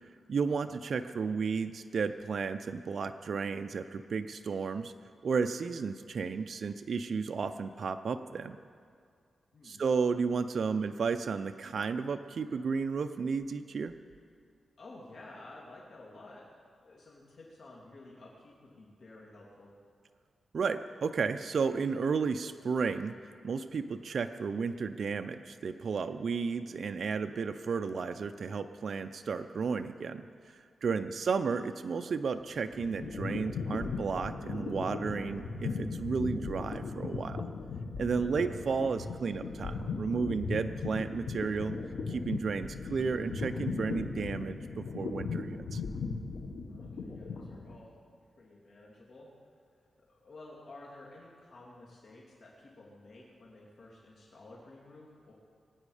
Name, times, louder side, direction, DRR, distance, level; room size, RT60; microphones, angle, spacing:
voice 1, 0.3-4.9 5.2-8.6 9.6-13.9 20.5-23.1 23.4-37.5 38.0-41.7 42.1-45.8, right 5 dB, 60° right, 8 dB, 0.5 m, -33 dB
voice 2, 14.8-16.4 16.8-19.7 30.9-31.2 38.2-38.5 46.7-48.0 48.4-49.3 50.1-55.3, left 2 dB, 65° left, -4 dB, 2.8 m, -52 dB
sound 1, 32.4-47.8, left 4 dB, 85° left, 1.3 m, -37 dB
22.5 x 9.3 x 4.9 m, 2.3 s
wide cardioid pair, 100°, 0 cm